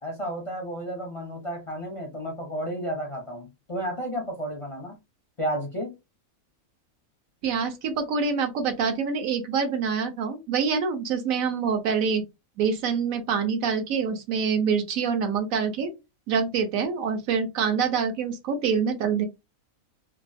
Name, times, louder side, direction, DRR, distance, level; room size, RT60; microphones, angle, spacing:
voice 1, 0.0-5.0 5.4-5.9, right 1 dB, 40° left, 0.4 m, -32 dB
voice 2, 7.4-12.2 12.6-15.9 16.3-19.3, right 6 dB, 70° right, 1.0 m, -26 dB
2.9 x 2.3 x 2.5 m
omnidirectional pair, 1.5 m